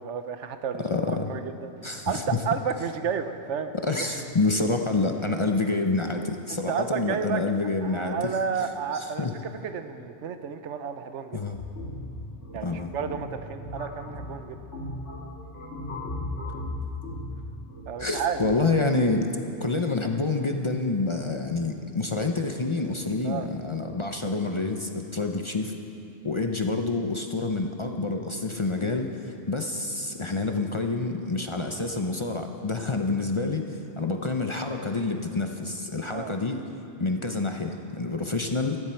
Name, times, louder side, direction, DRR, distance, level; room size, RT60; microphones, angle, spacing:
voice 1, 0.0-1.7 2.1-3.7 6.5-7.4 7.8-9.3 9.6-11.4 12.5-14.6 17.9-18.4 23.2-23.5 36.1-36.3, right 7 dB, 85° right, 9 dB, 1.1 m, -31 dB
voice 2, 0.8-1.3 1.8-2.4 3.8-8.3 8.9-9.3 11.3-11.6 12.6-12.9 18.0-19.3 19.6-25.8 26.2-36.6 37.0-38.8, left 3 dB, 30° left, 4 dB, 0.6 m, -28 dB
sound 1, 11.5-18.6, left 1 dB, 85° left, 2.5 m, -37 dB
16.0 x 14.5 x 4.5 m, 2.6 s
omnidirectional pair, 1.2 m